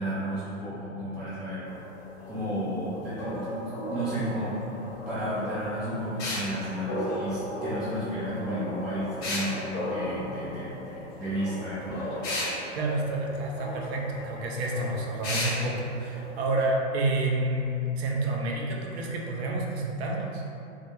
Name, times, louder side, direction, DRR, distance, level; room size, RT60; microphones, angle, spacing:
voice 1, 0.0-1.8 2.3-12.1, equal, 5° right, -13 dB, 0.3 m, -33 dB
sound 1, 1.6-16.6, left 1 dB, 80° left, 0.9 m, -38 dB
sound 2, 6.2-6.5 9.2-9.5 12.2-12.5 15.2-15.6, left 2 dB, 50° left, 1.0 m, -30 dB
voice 2, 12.8-20.4, right 2 dB, 55° right, -1 dB, 0.5 m, -29 dB
2.4 x 2.0 x 2.9 m, 2.5 s
hypercardioid pair, 115°, 38 cm